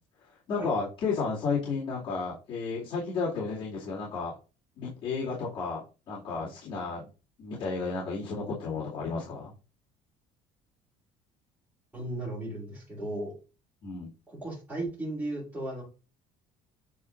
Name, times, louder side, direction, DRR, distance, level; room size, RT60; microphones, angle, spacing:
voice 1, 0.5-4.3 4.8-7.1 7.4-9.5 13.8-14.1, left 4 dB, 40° left, -8 dB, 2.5 m, -32 dB
voice 2, 11.9-13.3 14.3-15.8, right 1 dB, 10° right, -8 dB, 3.3 m, -35 dB
8.6 x 4.6 x 2.5 m, 0.32 s
cardioid pair, 170°, 14 cm